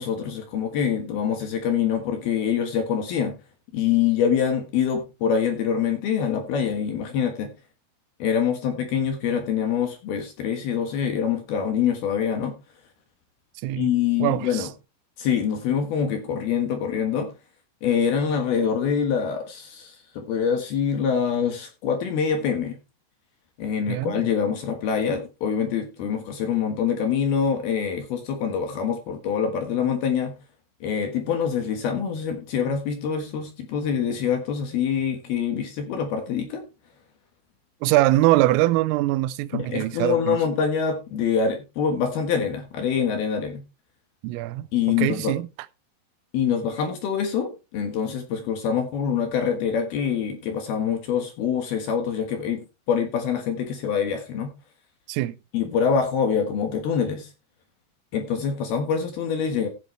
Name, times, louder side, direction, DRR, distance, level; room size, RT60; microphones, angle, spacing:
voice 1, 0.0-3.4 3.7-7.5 8.2-12.5 13.8-14.7 15.2-17.3 17.8-22.8 23.6-30.3 30.8-36.6 39.5-43.6 44.7-45.3 46.3-52.6 52.9-54.5 55.5-57.3 58.1-59.7, left 7 dB, 65° left, 2.7 m, -25 dB
voice 2, 13.6-13.9 14.2-14.7 23.9-24.2 37.8-40.4 44.2-45.5 55.1-55.3, right 16 dB, 85° right, 3.3 m, -23 dB
16.0 x 7.5 x 3.2 m
omnidirectional pair, 5.9 m